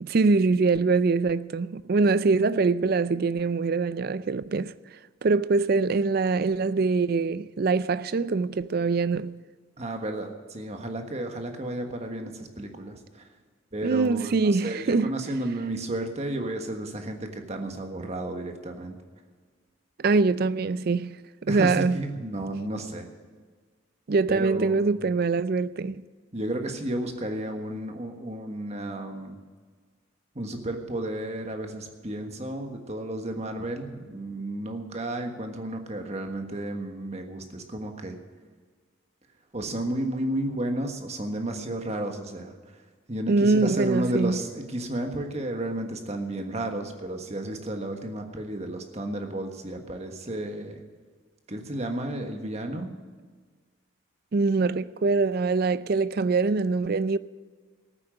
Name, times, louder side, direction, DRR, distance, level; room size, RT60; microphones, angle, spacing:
voice 1, 0.0-4.7 5.2-9.3 13.8-15.2 20.0-21.2 21.4-22.0 24.1-26.0 43.3-44.4 54.3-57.2, right 4 dB, 50° right, 0.4 m, -23 dB
voice 2, 9.8-13.3 13.7-19.0 21.5-23.1 24.3-24.9 26.3-29.4 30.3-38.2 39.5-42.8 43.1-50.8 51.5-52.9, right 1 dB, 35° right, 1.4 m, -32 dB
14.0 x 9.0 x 7.8 m
head